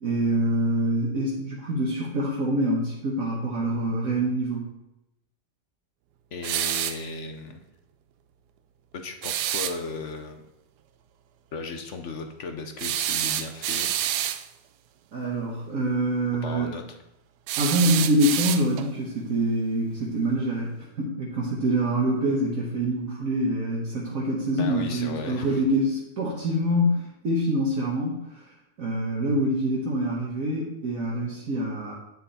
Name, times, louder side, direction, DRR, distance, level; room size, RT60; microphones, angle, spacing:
voice 1, 0.0-4.7 15.1-16.7 17.6-28.4 28.8-31.9, right 1 dB, 60° right, -4 dB, 1.7 m, -25 dB
voice 2, 6.3-7.7 8.9-10.5 11.5-14.0 16.4-17.0 24.6-25.6, left 4 dB, 55° left, 6 dB, 1.0 m, -36 dB
sound 1, 6.4-7.0 9.2-9.8 12.8-14.4 17.5-18.9, right 11 dB, 90° right, 1.2 m, -27 dB
9.3 x 6.7 x 4.2 m, 0.89 s
omnidirectional pair, 1.7 m